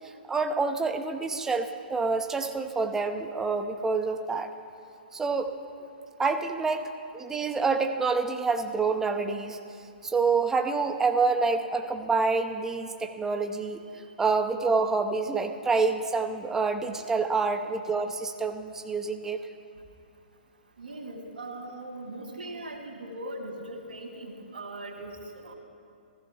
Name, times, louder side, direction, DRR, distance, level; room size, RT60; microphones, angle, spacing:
voice 1, 0.3-4.5 5.1-5.5 6.2-6.9 7.1-9.6 10.0-13.8 14.2-19.4, right 4 dB, 10° right, 6 dB, 0.7 m, -27 dB
voice 2, 20.8-25.5, right 1 dB, 70° right, 1 dB, 2.3 m, -40 dB
15.5 x 15.5 x 2.9 m, 2.5 s
figure-of-eight pair, 120°, 5 cm